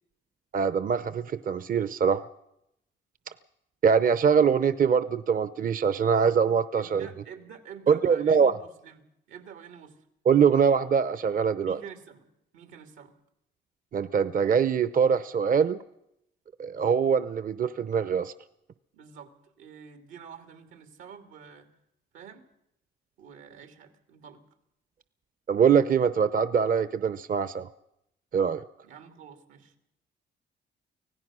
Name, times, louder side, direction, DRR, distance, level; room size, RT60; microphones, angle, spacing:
voice 1, 0.5-2.3 3.8-7.1 7.9-8.5 10.3-11.8 13.9-15.8 16.6-18.3 25.5-27.7 28.3-28.6, right 6 dB, 45° right, 14 dB, 0.7 m, -23 dB
voice 2, 6.8-10.0 11.6-13.1 18.9-21.7 22.1-22.5 23.2-24.4 28.8-29.7, right 7 dB, 90° right, 7 dB, 2.7 m, -48 dB
25.0 x 17.0 x 6.2 m, 0.80 s
cardioid pair, 90°, 20 cm